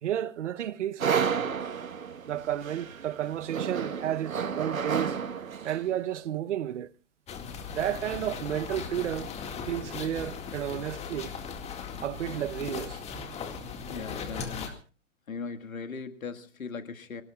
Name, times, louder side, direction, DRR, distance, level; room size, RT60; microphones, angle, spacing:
voice 1, 0.0-1.4 2.3-6.9 7.7-9.3 9.7-11.3 12.0-13.0, right 11 dB, 60° right, 1.0 m, -32 dB
sound 1, 1.0-5.9, right 7 dB, 90° right, 1.5 m, -31 dB
sound 2, 7.3-14.7, left 5 dB, 15° left, 2.0 m, -38 dB
voice 2, 13.9-14.7 15.3-17.2, left 5 dB, 90° left, 2.1 m, -39 dB
28.5 x 18.5 x 2.4 m
hypercardioid pair, 135°, 40 cm